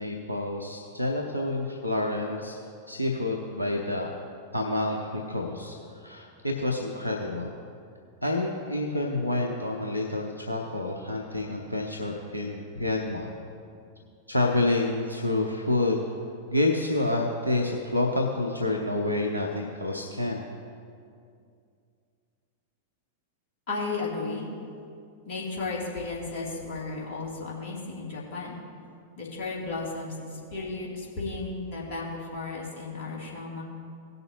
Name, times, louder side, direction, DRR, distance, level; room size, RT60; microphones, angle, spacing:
voice 1, 0.0-2.6 2.9-4.1 4.5-7.5 8.2-13.3 14.3-16.0 16.5-20.4, left 2 dB, 90° left, -1 dB, 0.8 m, -28 dB
voice 2, 23.7-24.5 25.3-28.5 29.2-33.6, left 3 dB, 50° left, -5 dB, 2.7 m, -34 dB
18.0 x 6.7 x 2.8 m, 2.4 s
figure-of-eight pair, 90°, 0 cm